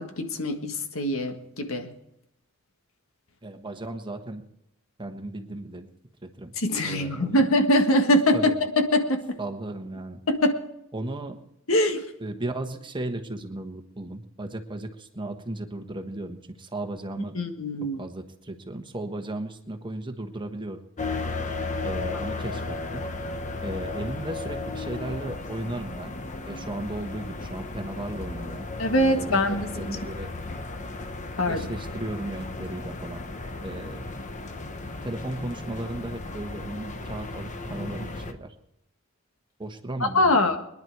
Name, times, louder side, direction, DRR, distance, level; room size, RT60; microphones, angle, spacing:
voice 1, 0.0-1.9 6.6-8.5 8.9-9.4 10.3-10.6 11.7-12.1 17.3-18.0 28.8-29.9 31.4-31.7 40.1-40.6, left 1 dB, 85° left, 6 dB, 1.7 m, -23 dB
voice 2, 3.4-4.5 5.0-5.9 6.2-6.5 6.8-7.4 8.3-8.5 9.4-10.2 10.9-11.4 12.2-17.4 18.0-20.8 21.8-23.1 23.6-26.1 26.4-28.6 28.9-30.3 31.5-33.2 33.6-34.1 35.0-38.5 39.6-40.6, right 1 dB, 25° right, 6 dB, 1.3 m, -35 dB
sound 1, 21.0-38.3, left 3 dB, 35° left, 1.0 m, -35 dB
22.5 x 10.5 x 4.7 m, 0.83 s
head